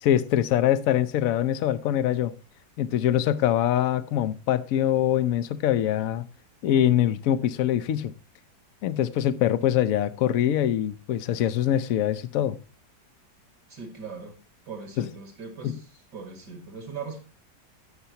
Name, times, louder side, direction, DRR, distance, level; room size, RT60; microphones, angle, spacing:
voice 1, 0.0-2.3 2.8-6.2 6.6-8.1 8.8-12.6 15.0-15.1 15.6-15.8, left 11 dB, 65° left, 0.9 m, -23 dB
voice 2, 13.7-14.3 14.7-15.9 16.1-17.2, right 5 dB, 65° right, 2.3 m, -39 dB
18.0 x 6.8 x 2.8 m
omnidirectional pair, 1.9 m